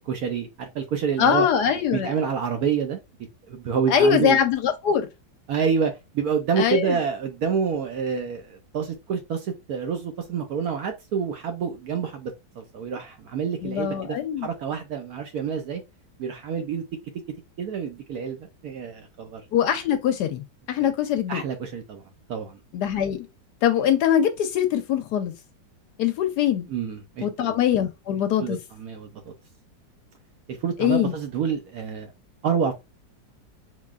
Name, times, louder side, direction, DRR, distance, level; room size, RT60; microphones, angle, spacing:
voice 1, 0.0-1.5 1.9-3.0 3.5-4.4 5.5-15.8 16.2-16.8 17.6-19.4 20.8-20.9 21.3-22.0 22.3-22.6 26.7-27.5 28.4-29.2 30.5-32.1 32.4-32.7, right 6 dB, 70° right, 1.0 m, -28 dB
voice 2, 1.2-2.1 3.9-5.1 6.6-7.0 13.6-14.5 19.5-21.4 22.7-23.3 23.6-25.3 26.0-26.7 27.2-28.6 30.8-31.1, left 9 dB, 75° left, 1.0 m, -22 dB
3.9 x 3.0 x 2.3 m
omnidirectional pair, 2.0 m